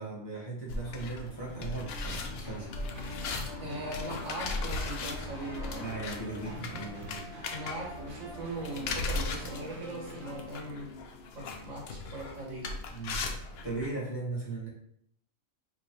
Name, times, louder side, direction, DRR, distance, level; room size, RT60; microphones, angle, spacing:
voice 1, 0.0-2.7 5.7-7.3 12.9-13.2 13.6-14.7, right 3 dB, 25° left, -6 dB, 0.7 m, -38 dB
sound 1, 0.7-13.9, left 3 dB, 65° left, 0.7 m, -38 dB
sound 2, 2.4-10.4, equal, 45° right, 1.0 m, -47 dB
voice 2, 3.6-5.9 7.4-10.9 11.3-12.7, right 1 dB, 65° right, -3 dB, 1.6 m, -40 dB
3.1 x 2.6 x 4.1 m, 0.70 s
omnidirectional pair, 1.4 m